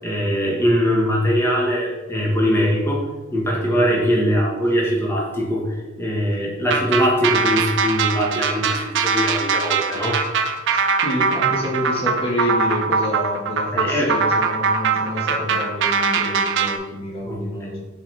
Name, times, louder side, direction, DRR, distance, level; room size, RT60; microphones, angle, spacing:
voice 1, 0.0-3.0 3.3-10.2 13.7-14.1 17.2-17.7, equal, 10° left, -3 dB, 1.3 m, -21 dB
sound 1, 6.7-16.8, right 5 dB, 60° right, 0.5 m, -21 dB
voice 2, 11.0-17.8, left 1 dB, 30° left, -4 dB, 1.5 m, -27 dB
7.0 x 4.3 x 3.3 m, 1.2 s
head